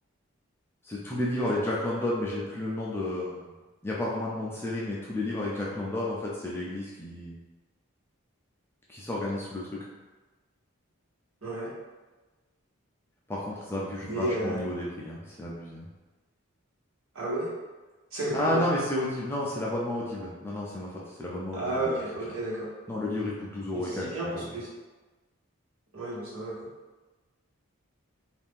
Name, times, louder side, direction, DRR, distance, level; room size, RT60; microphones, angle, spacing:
voice 1, 0.8-3.5 3.8-7.4 8.9-9.6 13.3-15.9 18.3-22.0 22.9-24.1 24.3-24.5, left 1 dB, 10° left, -5 dB, 0.4 m, -31 dB
voice 2, 11.4-11.7 14.0-14.6 17.1-17.5 18.1-18.7 21.5-22.7 23.7-24.7 25.9-26.7, right 1 dB, 80° right, -7 dB, 1.2 m, -32 dB
2.7 x 2.5 x 3.5 m, 1.2 s
head